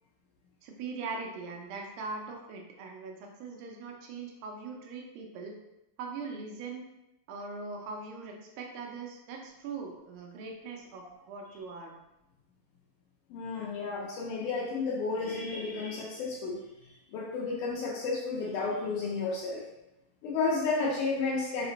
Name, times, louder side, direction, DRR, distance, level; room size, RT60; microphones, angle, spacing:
voice 1, 0.6-5.6 6.0-6.9 7.3-11.9, right 4 dB, 90° right, 1 dB, 2.6 m, -41 dB
voice 2, 13.3-19.6 20.2-21.7, left 4 dB, 75° left, -4 dB, 1.9 m, -32 dB
5.9 x 2.1 x 3.9 m, 0.89 s
omnidirectional pair, 4.1 m